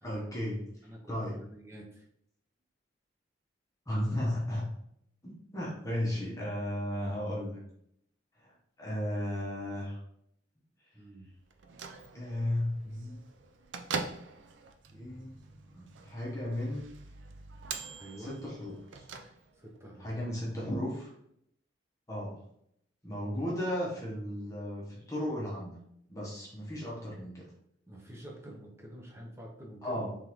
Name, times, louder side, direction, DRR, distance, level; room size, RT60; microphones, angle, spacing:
voice 1, 0.0-0.7 1.1-1.4 3.9-4.7 5.2-7.6 8.4-10.0 12.1-13.2 14.9-15.4 15.7-16.9 18.2-19.0 20.0-21.1 22.1-22.4 23.0-25.8 26.1-27.5 29.8-30.1, left 1 dB, 15° left, -5 dB, 0.9 m, -35 dB
voice 2, 0.8-2.0 10.9-11.3 18.0-18.4 19.6-20.2 27.9-30.1, right 1 dB, 15° right, -1 dB, 0.8 m, -48 dB
Bell / Microwave oven, 11.5-19.8, right 5 dB, 85° right, 0.5 m, -43 dB
3.7 x 3.6 x 3.0 m, 0.73 s
head